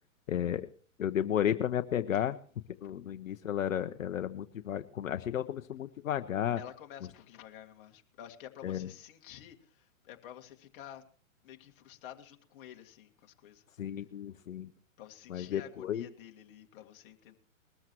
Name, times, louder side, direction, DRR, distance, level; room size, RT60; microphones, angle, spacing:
voice 1, 0.3-0.7 1.0-2.4 2.8-6.6 8.6-8.9 13.8-14.7 15.3-16.0, left 10 dB, 75° left, 0.9 m, -33 dB
voice 2, 6.6-11.0 11.4-13.6 15.0-17.4, left 11 dB, 40° left, 2.0 m, -50 dB
21.0 x 14.0 x 3.0 m
hypercardioid pair, 140°, 40 cm